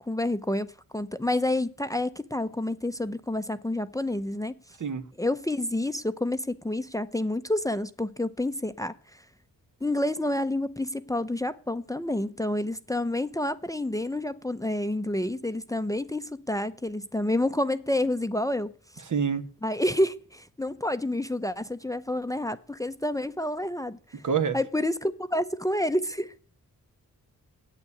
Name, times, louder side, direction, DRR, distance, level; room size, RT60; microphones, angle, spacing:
voice 1, 0.0-4.6 5.2-9.2 9.8-19.0 19.6-24.0 24.5-26.3, left 1 dB, 10° left, 0.7 m, -29 dB
voice 2, 19.0-19.5 24.2-24.6, right 6 dB, 60° right, 1.2 m, -26 dB
9.6 x 8.4 x 8.3 m
cardioid pair, 70°, 35 cm